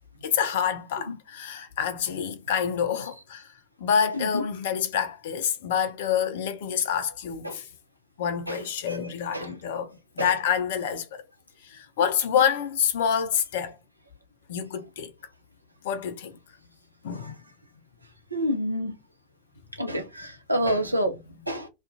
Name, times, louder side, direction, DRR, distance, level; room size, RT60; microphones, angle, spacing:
voice 1, 0.2-3.5 3.8-7.7 8.2-11.2 11.6-13.8 14.5-15.1 15.8-16.4 17.0-17.4 21.1-21.2, left 8 dB, 55° left, 0.4 m, -27 dB
voice 2, 18.3-18.9 19.8-21.1 21.5-21.7, equal, 85° right, 0.5 m, -28 dB
2.3 x 2.1 x 2.5 m
figure-of-eight pair, 90°, 0 cm